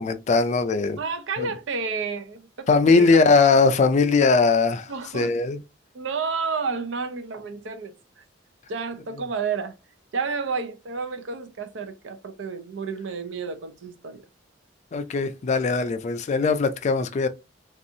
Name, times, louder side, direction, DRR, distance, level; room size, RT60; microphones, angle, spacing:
voice 1, 0.0-1.0 1.4-1.5 2.7-5.6 14.9-17.3, left 4 dB, 40° left, 0.3 m, -20 dB
voice 2, 0.9-3.1 4.9-5.3 5.9-8.2 8.7-9.7 10.1-14.3, right 5 dB, 75° right, 0.5 m, -31 dB
2.6 x 2.4 x 2.6 m
head